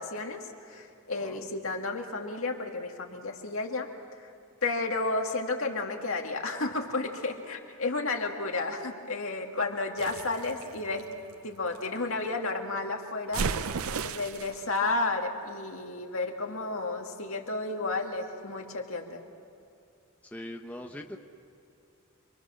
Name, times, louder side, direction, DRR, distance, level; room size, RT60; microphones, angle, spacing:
voice 1, 0.0-3.9 4.6-11.0 11.4-19.2, left 3 dB, 65° left, 2 dB, 2.2 m, -32 dB
voice 2, 1.1-1.5 20.3-21.2, left 1 dB, 5° left, 2 dB, 0.9 m, -41 dB
sound 1, 10.0-11.9 13.3-14.6, right 5 dB, 75° right, 0.6 m, -34 dB
28.0 x 23.5 x 6.4 m, 2.6 s
head